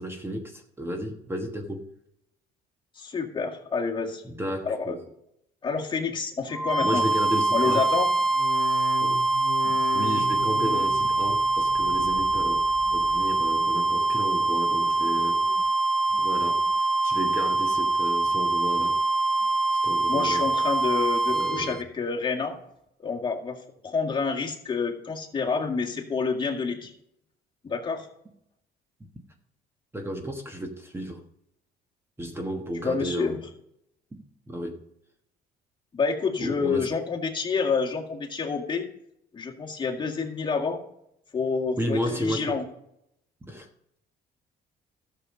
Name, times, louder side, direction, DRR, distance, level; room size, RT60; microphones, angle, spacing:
voice 1, 0.0-1.9 4.2-5.0 6.8-7.9 9.0-9.2 9.6-12.6 12.9-15.4 16.2-19.0 19.8-20.5 21.3-21.8 29.0-29.1 29.9-31.2 32.2-33.4 34.1-34.8 36.4-36.9 41.8-42.6 43.4-43.7, equal, 15° right, 4 dB, 1.3 m, -33 dB
voice 2, 3.0-4.2 4.7-5.0 5.6-7.0 7.5-8.1 20.1-22.6 23.0-23.6 23.8-26.9 27.6-28.1 32.8-33.4 35.9-38.9 39.3-40.8 41.3-42.6, left 5 dB, 30° left, 0 dB, 1.9 m, -28 dB
sound 1, 6.5-21.8, right 3 dB, ahead, 0.6 m, -24 dB
sound 2, 8.3-13.6 13.9-14.5 15.0-15.7 16.1-16.8 17.2-17.8 18.3-18.9 19.4-19.5, left 6 dB, 75° left, 1.2 m, -40 dB
13.5 x 7.0 x 5.3 m, 0.78 s
cardioid pair, 110°, 17 cm